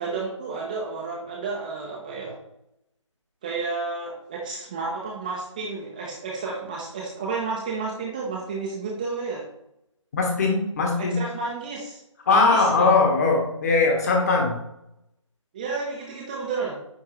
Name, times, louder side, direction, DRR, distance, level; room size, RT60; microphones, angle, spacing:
voice 1, 0.0-2.4 3.4-9.5 11.0-12.0 12.3-12.9 15.5-16.8, right 4 dB, 15° right, -3 dB, 0.6 m, -31 dB
voice 2, 10.1-11.2 12.3-14.6, left 3 dB, 30° left, 1 dB, 1.4 m, -20 dB
9.6 x 3.5 x 3.3 m, 0.82 s
figure-of-eight pair, 155°, 17 cm